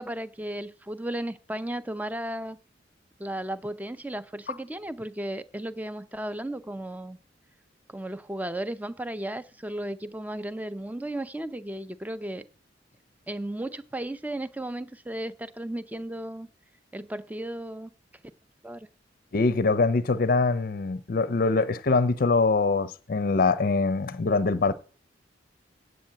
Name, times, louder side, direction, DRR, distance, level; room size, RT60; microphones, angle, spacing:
voice 1, 0.0-2.6 3.2-7.2 7.9-12.4 13.3-16.5 16.9-17.9 18.6-18.9, right 1 dB, 10° right, 0.5 m, -34 dB
voice 2, 19.3-24.7, left 3 dB, 50° left, 0.5 m, -23 dB
8.6 x 8.1 x 7.6 m
head